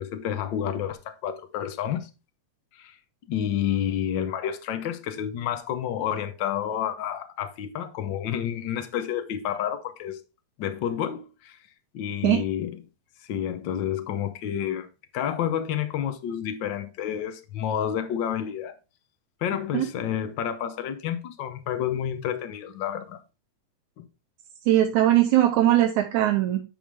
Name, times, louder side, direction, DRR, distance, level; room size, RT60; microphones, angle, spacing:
voice 1, 0.0-2.1 2.7-3.0 3.3-10.2 10.6-11.6 11.9-12.8 13.2-14.9 15.1-18.8 19.4-23.2 24.0-24.1, left 9 dB, 85° left, 1.0 m, -29 dB
voice 2, 24.7-26.6, right 13 dB, 85° right, 2.2 m, -20 dB
9.8 x 5.6 x 3.5 m
omnidirectional pair, 3.3 m